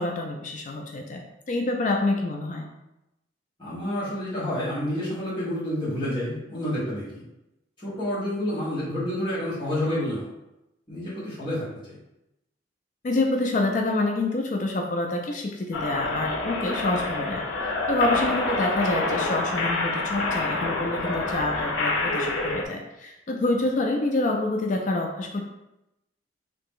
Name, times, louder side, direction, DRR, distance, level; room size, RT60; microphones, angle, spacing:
voice 1, 0.0-2.7 13.0-25.4, left 2 dB, 40° left, 2 dB, 0.3 m, -27 dB
voice 2, 3.6-7.2 7.8-10.3 10.9-11.9, left 1 dB, 25° left, -9 dB, 1.4 m, -29 dB
sound 1, 15.7-22.7, left 2 dB, 90° left, 0.6 m, -27 dB
3.2 x 2.8 x 3.6 m, 0.91 s
head